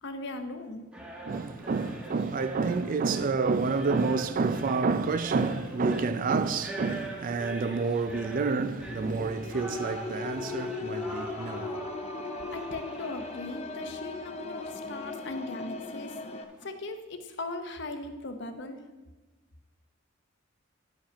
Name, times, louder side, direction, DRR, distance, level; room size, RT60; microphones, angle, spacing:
voice 1, 0.0-0.8 12.5-16.2 16.6-18.8, left 2 dB, 65° left, 0.8 m, -38 dB
sound 1, 0.9-16.7, right 1 dB, 5° right, 1.1 m, -43 dB
voice 2, 1.3-11.8, right 4 dB, 45° right, 0.4 m, -29 dB
sound 2, 8.8-16.4, left 3 dB, 35° left, 0.5 m, -38 dB
10.0 x 5.2 x 5.1 m
head